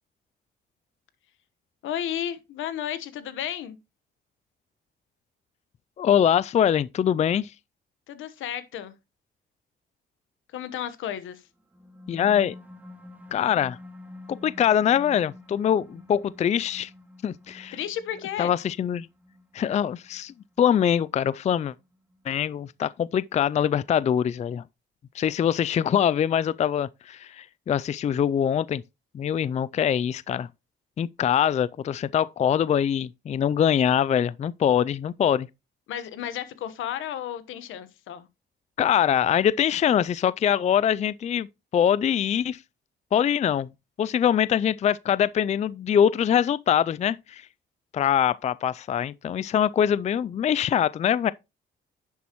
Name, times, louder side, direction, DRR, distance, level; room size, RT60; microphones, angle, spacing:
voice 1, 1.8-3.8 8.1-8.9 10.5-11.4 17.7-18.5 35.9-38.3, left 10 dB, 85° left, 1.2 m, -33 dB
voice 2, 6.0-7.5 12.1-12.5 13.3-13.8 14.3-16.9 17.2-17.8 18.4-19.1 19.5-21.7 22.3-24.6 25.1-28.8 29.1-30.5 31.0-35.5 38.8-41.5 41.7-42.6 43.1-43.7 44.0-47.4 47.9-51.3, left 9 dB, 35° left, 0.4 m, -23 dB
sound 1, 11.6-22.5, left 2 dB, 10° right, 1.8 m, -48 dB
10.5 x 7.1 x 3.0 m
cardioid pair, 90°, 20 cm